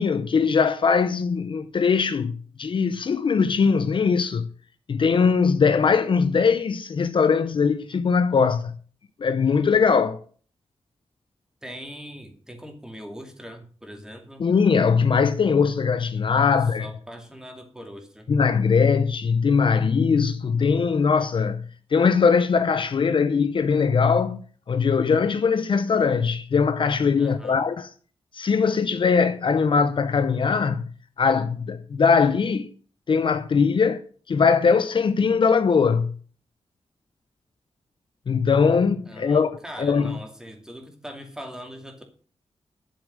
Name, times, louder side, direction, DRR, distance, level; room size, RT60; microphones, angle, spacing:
voice 1, 0.0-2.3 2.6-4.5 4.9-8.7 9.2-10.2 14.4-16.9 18.3-21.6 21.9-24.4 24.7-27.9 28.3-30.8 31.2-32.7 33.1-34.0 34.3-36.1 38.3-39.5 39.8-40.2, left 5 dB, 50° left, 0.7 m, -21 dB
voice 2, 11.6-14.5 16.5-18.3 27.2-27.7 39.1-42.0, equal, 5° right, 2.5 m, -41 dB
11.5 x 7.2 x 6.4 m
wide cardioid pair, 175°, 11 cm